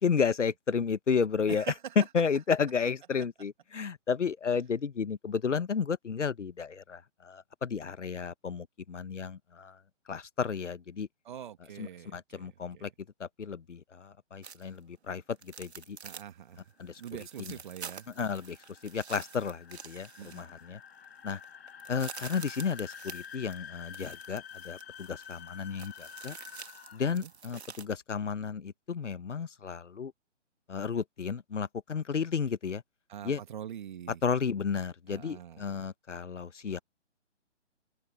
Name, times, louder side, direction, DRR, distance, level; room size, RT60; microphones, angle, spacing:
voice 1, 0.0-1.6 2.0-9.8 10.1-11.1 11.8-12.9 13.2-16.0 16.8-17.0 17.5-17.6 18.2-18.6 18.8-20.8 21.2-21.4 21.9-26.4 26.9-30.1 30.7-32.8 33.2-33.4 34.2-36.8, left 6 dB, 75° left, 1.2 m, -32 dB
voice 2, 1.5-2.0 3.2-3.3 11.3-12.9 16.0-16.6 17.0-18.1 20.2-20.4 27.1-27.3 33.1-34.2 35.1-35.7, right 9 dB, 40° right, 2.3 m, -44 dB
sound 1, 14.4-14.8 15.4-16.3 16.6-16.7 17.0-20.7 21.0-21.1 21.4-27.9, right 6 dB, 60° right, 2.0 m, -48 dB
sound 2, 16.7-27.4, left 8 dB, 55° left, 7.0 m, -49 dB
open air
figure-of-eight pair, 145°, 36 cm